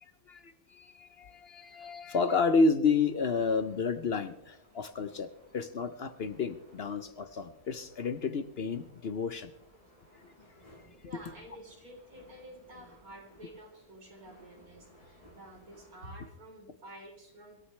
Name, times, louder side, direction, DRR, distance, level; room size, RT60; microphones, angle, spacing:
voice 1, 0.0-9.5, left 4 dB, 55° left, 11 dB, 0.8 m, -31 dB
sound 1, 2.9-16.1, equal, 20° left, 7.2 m, -60 dB
voice 2, 11.0-17.6, right 1 dB, 75° right, 0 dB, 4.2 m, -50 dB
25.5 x 13.0 x 3.2 m, 0.82 s
omnidirectional pair, 1.5 m